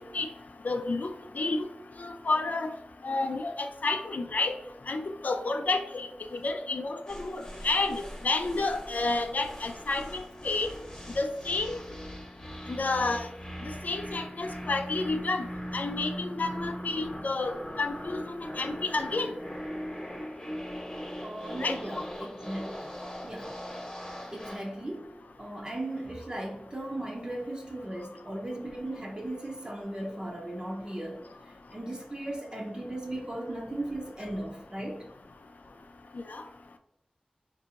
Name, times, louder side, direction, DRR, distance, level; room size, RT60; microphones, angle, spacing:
voice 1, 0.6-1.1 1.4-1.7 2.0-2.7 3.0-4.5 4.9-10.7 11.2-11.8 12.7-13.3 13.8-15.5 15.7-19.3 21.6-21.8 36.3-36.4, left 3 dB, 75° left, 6 dB, 0.4 m, -30 dB
sound 1, 7.1-24.7, equal, 25° left, 1.0 m, -40 dB
voice 2, 21.2-22.9 23.2-23.6 24.3-25.1 25.4-35.1, right 1 dB, 30° right, -1 dB, 0.7 m, -37 dB
3.8 x 2.6 x 2.8 m, 0.79 s
wide cardioid pair, 70°, 3 cm